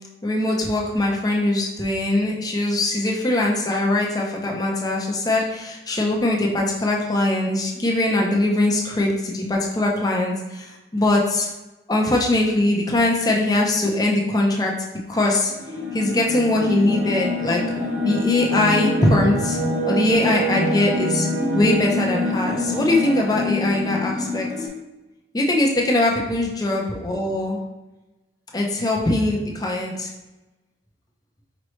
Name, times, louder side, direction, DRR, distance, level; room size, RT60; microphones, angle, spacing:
voice 1, 0.2-10.7 10.9-11.5 11.9-14.7 15.1-15.5 15.9-17.6 18.0-19.6 19.9-21.3 21.5-24.5 25.3-27.6 28.5-30.1, left 1 dB, 20° left, -1 dB, 0.6 m, -21 dB
sound 1, 15.5-24.7, left 1 dB, 75° right, 1.5 m, -25 dB
5.1 x 3.1 x 3.1 m, 1.1 s
head